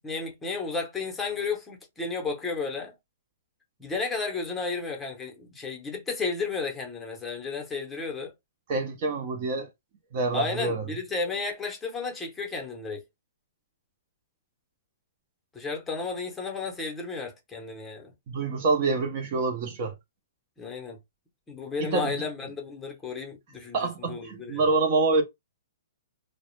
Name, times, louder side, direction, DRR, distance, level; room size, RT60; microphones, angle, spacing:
voice 1, 0.0-2.9 3.8-8.3 10.3-13.0 15.5-18.1 20.6-21.0 21.5-24.6, left 4 dB, 10° left, 0.7 m, -33 dB
voice 2, 8.7-9.7 10.1-10.8 18.3-19.9 21.8-22.1 23.7-25.2, right 3 dB, 40° right, 0.5 m, -26 dB
2.2 x 2.0 x 3.0 m
hypercardioid pair, 155°, 0 cm